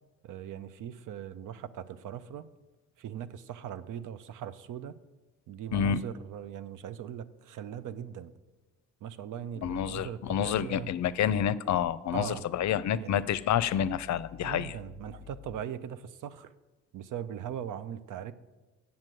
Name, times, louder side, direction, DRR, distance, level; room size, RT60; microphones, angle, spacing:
voice 1, 0.2-2.5 3.0-5.0 5.5-8.3 9.0-10.9 12.1-12.4 12.9-13.2 14.4-16.5 16.9-18.3, right 9 dB, 75° right, 13 dB, 0.6 m, -40 dB
voice 2, 9.6-14.7, left 9 dB, 60° left, 17 dB, 0.5 m, -28 dB
7.4 x 7.2 x 7.8 m, 1.1 s
supercardioid pair, 55°, 31 cm